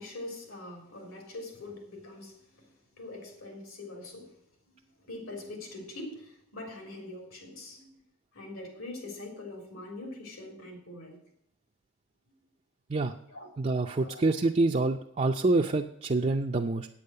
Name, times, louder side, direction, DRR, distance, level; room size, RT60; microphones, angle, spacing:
voice 1, 0.0-4.3 4.7-8.0 8.3-11.2 13.3-13.5 14.0-14.3, left 2 dB, 75° left, 2 dB, 3.6 m, -43 dB
voice 2, 13.6-16.9, right 2 dB, 30° right, 2 dB, 0.4 m, -26 dB
8.9 x 8.5 x 6.6 m, 0.74 s
head